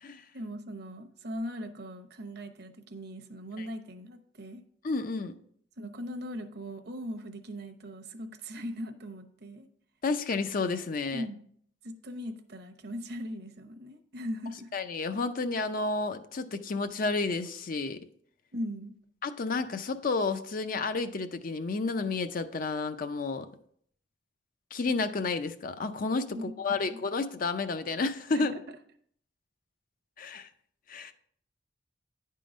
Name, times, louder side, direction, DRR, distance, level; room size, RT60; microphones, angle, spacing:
voice 1, 0.3-4.6 5.8-9.7 11.1-11.4 11.8-14.7 18.5-18.9 26.3-27.0 28.3-28.6, equal, 55° right, 6 dB, 0.8 m, -39 dB
voice 2, 4.8-5.3 10.0-11.3 14.7-18.0 19.2-23.5 24.7-28.5 30.2-30.5 30.9-31.1, left 3 dB, 45° left, 9 dB, 0.5 m, -31 dB
10.0 x 3.8 x 5.1 m, 0.63 s
head